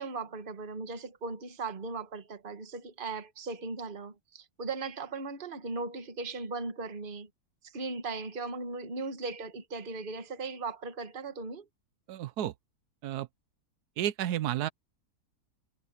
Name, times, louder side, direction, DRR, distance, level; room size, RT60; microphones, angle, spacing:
voice 1, 0.0-7.3 7.6-11.7, right 3 dB, 35° right, 1.5 m, -38 dB
voice 2, 12.1-12.5 13.0-13.3 14.0-14.7, right 12 dB, 85° right, 1.2 m, -31 dB
omnidirectional pair, 1.6 m